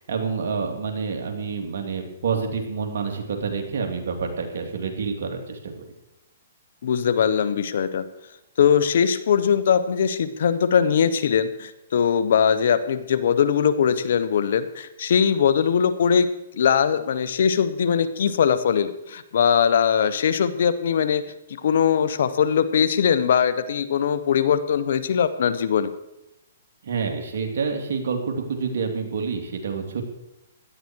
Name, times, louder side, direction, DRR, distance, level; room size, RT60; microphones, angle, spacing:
voice 1, 0.0-5.7 26.8-30.0, right 5 dB, 70° right, 3 dB, 3.2 m, -28 dB
voice 2, 6.8-8.0 8.6-16.3 16.5-21.2 21.5-25.9, left 7 dB, 65° left, 13 dB, 1.2 m, -21 dB
17.0 x 12.0 x 4.7 m, 0.89 s
hypercardioid pair, 140°, 0 cm